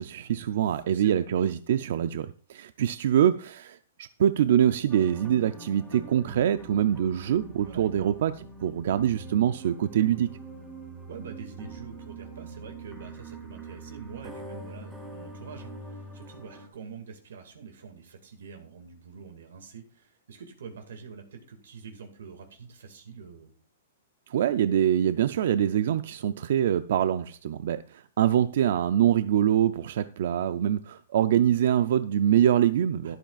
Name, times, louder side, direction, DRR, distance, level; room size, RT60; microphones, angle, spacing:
voice 1, 0.0-8.3 8.6-10.3 24.3-33.2, right 10 dB, 60° right, 13 dB, 0.4 m, -24 dB
voice 2, 0.8-1.5 7.6-8.2 11.1-23.5 33.0-33.2, right 6 dB, 85° right, 5 dB, 2.0 m, -45 dB
sound 1, 4.9-16.7, right 2 dB, 5° right, 2.5 m, -43 dB
12.0 x 11.5 x 2.4 m, 0.43 s
hypercardioid pair, 165°, 0 cm